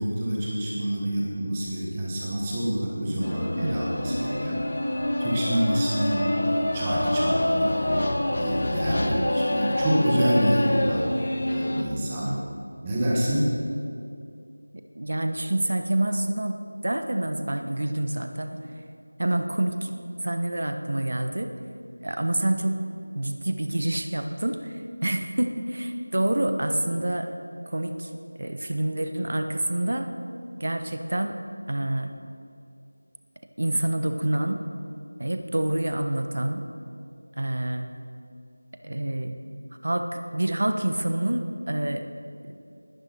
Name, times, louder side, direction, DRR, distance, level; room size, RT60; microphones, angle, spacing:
voice 1, 0.0-4.6 4.9-6.3 6.7-8.0 8.4-11.1 11.5-12.3 12.8-13.5, equal, 10° right, -6 dB, 1.5 m, -27 dB
sound 1, 3.2-11.8, left 1 dB, 40° left, 1.3 m, -26 dB
voice 2, 14.7-18.6 19.2-19.9 20.2-21.5 22.0-22.8 23.1-27.3 27.7-28.1 28.3-30.1 30.6-31.4 31.7-32.1 33.6-34.6 35.2-36.7 37.4-37.9 38.8-39.3 39.8-42.1, right 1 dB, 55° right, 6 dB, 1.2 m, -27 dB
20.5 x 10.5 x 4.4 m, 2.6 s
figure-of-eight pair, 175°, 0 cm